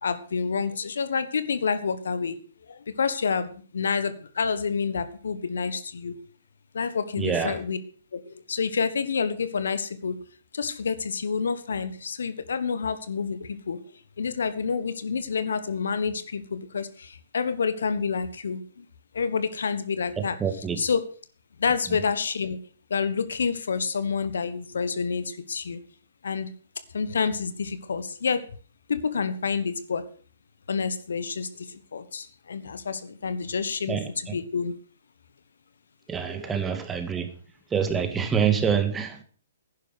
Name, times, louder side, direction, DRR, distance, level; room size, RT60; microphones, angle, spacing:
voice 1, 0.0-2.4 2.7-6.1 6.7-7.8 8.1-10.2 10.5-13.8 14.2-18.9 19.1-21.0 21.6-22.6 22.9-25.8 26.2-26.5 26.9-28.5 28.9-30.1 30.7-34.7 36.3-36.6, left 5 dB, 70° left, 13 dB, 1.4 m, -28 dB
voice 2, 7.2-7.6 20.4-20.8 33.9-34.0 36.1-37.3 37.7-39.2, right 7 dB, 15° right, 7 dB, 2.0 m, -26 dB
11.5 x 10.5 x 6.3 m, 0.42 s
figure-of-eight pair, 125°, 0 cm